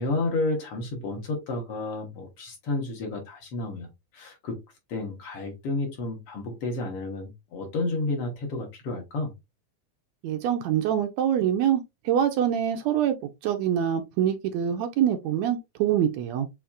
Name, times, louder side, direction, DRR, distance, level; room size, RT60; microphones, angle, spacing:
voice 1, 0.0-3.9 4.1-4.6 4.9-9.3, left 2 dB, 60° left, 1.8 m, -31 dB
voice 2, 10.2-13.2 13.4-16.5, right 10 dB, 80° right, 1.8 m, -25 dB
7.1 x 2.8 x 2.3 m
omnidirectional pair, 3.4 m